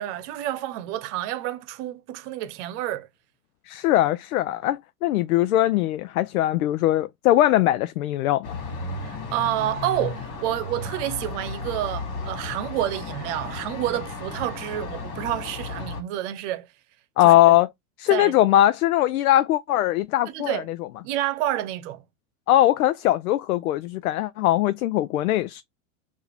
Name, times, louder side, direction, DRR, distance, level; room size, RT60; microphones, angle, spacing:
voice 1, 0.0-3.1 9.0-16.7 17.2-17.6 18.1-18.3 20.3-20.7 21.0-22.0, right 13 dB, 50° right, 1.0 m, -29 dB
voice 2, 3.7-8.6 17.2-17.7 18.0-20.6 22.5-25.6, left 14 dB, 70° left, 0.6 m, -20 dB
sound 1, 8.4-16.0, left 3 dB, 50° left, 2.4 m, -34 dB
4.7 x 2.8 x 3.3 m
hypercardioid pair, 110°, 45 cm